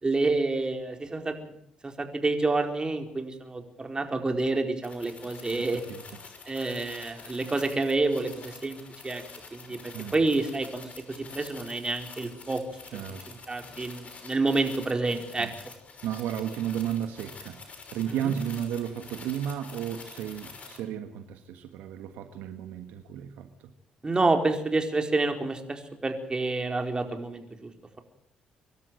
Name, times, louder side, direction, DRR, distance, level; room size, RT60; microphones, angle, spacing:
voice 1, 0.0-1.5 1.8-5.8 6.5-8.8 9.0-9.2 9.5-9.8 10.1-12.6 13.5-15.5 18.2-18.3 24.0-27.7, right 3 dB, 25° right, 5 dB, 4.6 m, -28 dB
sound 1, 4.8-20.8, left 4 dB, 45° left, 5.9 m, -47 dB
voice 2, 5.2-6.0 9.7-10.1 12.9-13.3 15.4-15.6 16.0-23.7, right 9 dB, 80° right, 8 dB, 1.6 m, -34 dB
25.0 x 12.5 x 9.3 m, 0.71 s
hypercardioid pair, 55°, 3 cm